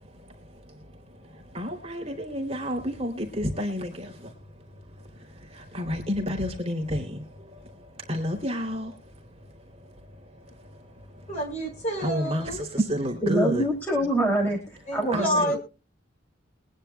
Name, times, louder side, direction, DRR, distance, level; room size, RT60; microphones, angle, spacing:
voice 1, 1.5-4.3 5.5-7.2 8.1-8.9 12.0-13.7 15.1-15.5, equal, 30° right, 2.9 m, -30 dB
voice 2, 11.3-12.7 14.9-15.6, equal, 35° left, 5.3 m, -28 dB
voice 3, 13.2-15.6, right 1 dB, 10° left, 2.8 m, -25 dB
22.5 x 10.0 x 2.2 m
head